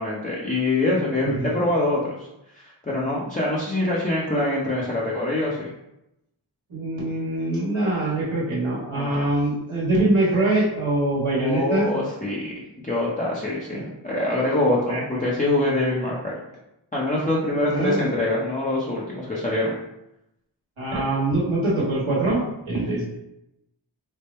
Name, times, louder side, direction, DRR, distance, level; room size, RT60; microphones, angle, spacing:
voice 1, 0.0-2.3 2.6-5.7 8.9-9.3 11.4-12.5 12.8-16.3 16.9-19.7, left 2 dB, 15° left, -7 dB, 0.7 m, -24 dB
voice 2, 6.7-11.9 13.7-13.9 14.9-15.0 17.7-18.1 20.8-23.1, right 2 dB, 80° right, -7 dB, 1.3 m, -23 dB
3.5 x 2.1 x 4.2 m, 0.87 s
wide cardioid pair, 45°, 47 cm